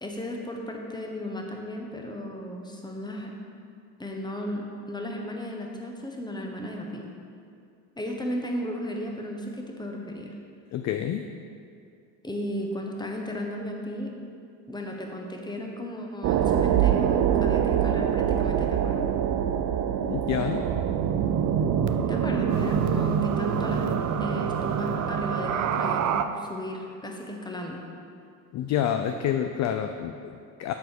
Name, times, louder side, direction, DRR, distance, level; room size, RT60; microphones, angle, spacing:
voice 1, 0.0-3.3 4.0-7.0 8.0-10.3 12.2-14.1 14.7-19.1 22.1-23.9 24.2-27.8, left 1 dB, 10° left, 1 dB, 1.1 m, -35 dB
voice 2, 10.7-11.3 20.0-20.7 28.5-30.7, left 9 dB, 40° left, 7 dB, 0.4 m, -28 dB
sound 1, 16.2-26.2, right 8 dB, 40° right, 0.5 m, -25 dB
6.9 x 4.2 x 6.6 m, 2.4 s
supercardioid pair, 80°, 44 cm